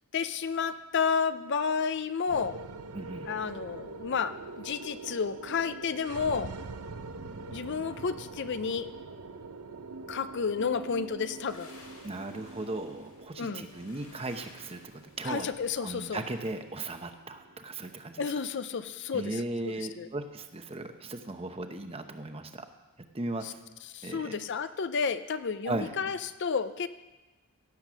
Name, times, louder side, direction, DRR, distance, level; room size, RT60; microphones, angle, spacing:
voice 1, 0.1-2.6 3.3-6.5 7.5-8.9 10.1-11.7 13.4-13.7 15.2-16.2 18.2-19.4 19.8-20.1 23.4-23.5 23.9-26.9, left 6 dB, 50° left, 12 dB, 0.5 m, -31 dB
sound 1, 2.3-20.7, right 3 dB, 85° right, 0.7 m, -45 dB
voice 2, 2.9-3.3 12.0-15.5 15.8-18.2 19.1-22.7 23.1-23.5 24.0-24.4 25.6-25.9, right 2 dB, 25° right, 7 dB, 0.8 m, -37 dB
sound 2, 11.5-16.6, left 2 dB, 90° left, 3.8 m, -57 dB
16.5 x 7.3 x 6.2 m, 1.1 s
head